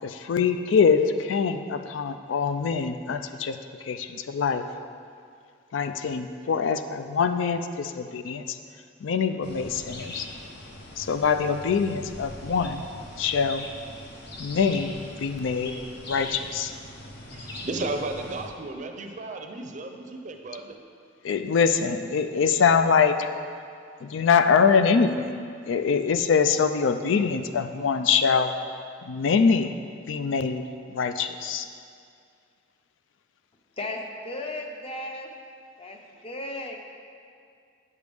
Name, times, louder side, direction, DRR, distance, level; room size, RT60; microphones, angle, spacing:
voice 1, 0.0-3.6 3.8-4.6 5.7-8.6 9.0-10.3 11.0-12.8 13.2-13.7 14.4-14.9 15.2-15.7 16.1-16.7 21.2-23.2 24.0-25.3 25.7-28.5 29.0-29.8 30.1-31.7, left 6 dB, 85° left, 8 dB, 0.4 m, -24 dB
sound 1, 9.4-18.5, left 1 dB, 60° left, 0.8 m, -41 dB
voice 2, 17.3-20.8, right 2 dB, 40° right, 4 dB, 0.5 m, -34 dB
voice 3, 33.8-35.3 35.8-36.8, left 2 dB, 30° left, 2 dB, 0.6 m, -35 dB
8.4 x 6.5 x 3.5 m, 2.3 s
head